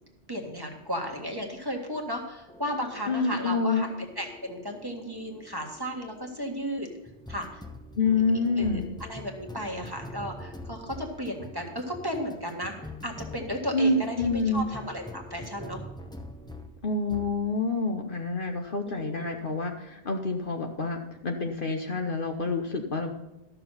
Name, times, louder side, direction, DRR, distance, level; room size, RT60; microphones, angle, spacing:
voice 1, 0.3-6.9 7.3-7.6 8.5-15.8 18.8-19.3, equal, 20° right, 1 dB, 1.6 m, -34 dB
sound 1, 2.5-16.8 17.1-17.4, left 1 dB, 5° left, 0.6 m, -44 dB
voice 2, 3.1-3.9 8.0-8.9 13.7-14.6 16.8-23.1, left 3 dB, 50° left, 3 dB, 1.1 m, -27 dB
12.5 x 6.9 x 5.6 m, 0.97 s
omnidirectional pair, 1.2 m